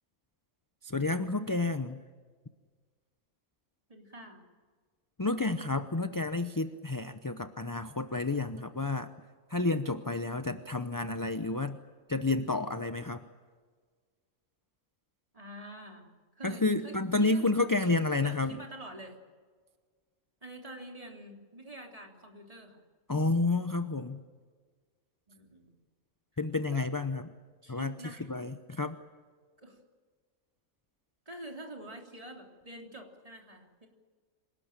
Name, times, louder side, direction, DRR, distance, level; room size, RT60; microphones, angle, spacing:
voice 1, 0.8-2.0 5.2-9.1 9.5-11.8 12.1-13.2 16.4-18.6 23.1-24.2 26.4-27.3 27.7-27.9 28.3-29.0, left 3 dB, 20° left, 9 dB, 0.6 m, -30 dB
voice 2, 3.9-4.4 15.3-16.1 16.4-16.9 17.2-19.2 20.4-22.8 25.3-25.7 26.7-26.9 27.6-28.3 29.6-29.8 31.3-33.9, right 1 dB, 25° right, 1 dB, 3.5 m, -46 dB
26.5 x 18.5 x 9.0 m, 1.6 s
omnidirectional pair, 1.5 m